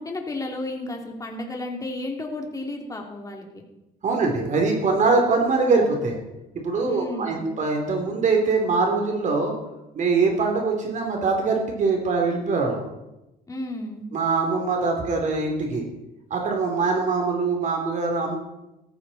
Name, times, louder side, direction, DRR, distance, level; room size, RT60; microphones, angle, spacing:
voice 1, 0.0-3.6 6.8-7.5 13.5-14.1, left 2 dB, 20° left, 1 dB, 2.9 m, -33 dB
voice 2, 4.0-6.2 6.5-9.5 9.9-12.8 14.1-15.8 16.3-18.4, right 4 dB, 45° right, 3 dB, 3.2 m, -23 dB
15.0 x 14.5 x 4.2 m, 0.95 s
cardioid pair, 110°, 17 cm